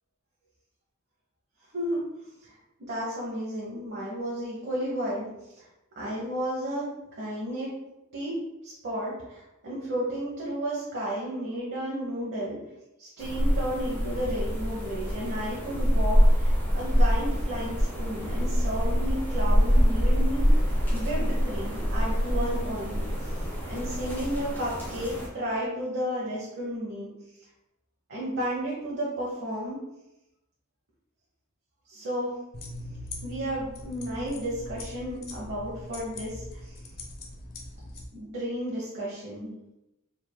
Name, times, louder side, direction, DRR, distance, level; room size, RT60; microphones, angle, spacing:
voice 1, 1.7-5.3 5.6-5.7 6.0-6.9 7.2-7.7 8.1-8.3 8.6-12.6 13.0-20.7 20.9-23.4 23.7-27.1 28.1-29.8 31.9-32.3 33.2-36.8 38.1-39.5, equal, 55° right, -6 dB, 1.0 m, -33 dB
sound 1, 13.2-25.3, equal, 10° left, 1.1 m, -25 dB
sound 2, 32.5-38.1, left 2 dB, 45° left, 0.7 m, -41 dB
4.7 x 3.5 x 2.2 m, 0.90 s
head